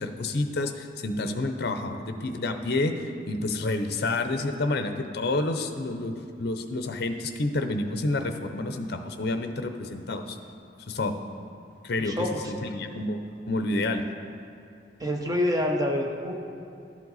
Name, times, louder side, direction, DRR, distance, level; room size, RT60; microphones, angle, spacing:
voice 1, 0.0-6.1 6.4-10.4 10.9-11.2 11.8-12.2 12.5-13.2 13.5-14.0, left 2 dB, 55° left, 7 dB, 0.6 m, -29 dB
voice 2, 12.0-12.5 15.0-16.4, left 1 dB, 20° right, 1 dB, 0.8 m, -27 dB
12.0 x 7.5 x 4.0 m, 2.6 s
head